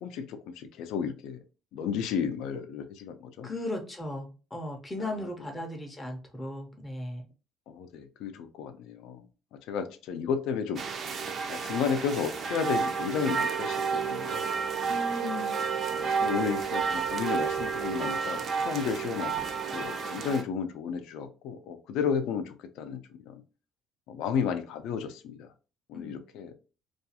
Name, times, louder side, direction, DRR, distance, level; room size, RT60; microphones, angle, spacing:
voice 1, 0.0-1.4 1.7-3.5 7.7-9.2 9.7-10.8 11.5-14.5 15.9-18.4 18.6-19.5 19.7-23.0 23.3-23.4 24.1-25.5 25.9-26.5, left 7 dB, 80° left, 8 dB, 0.4 m, -32 dB
voice 2, 3.4-7.3 14.9-15.6 25.9-26.2, left 1 dB, 15° left, 3 dB, 0.5 m, -37 dB
sound 1, 10.8-20.4, right 6 dB, 40° right, 0.4 m, -31 dB
2.3 x 2.3 x 2.7 m, 0.33 s
cardioid pair, 135°, 0 cm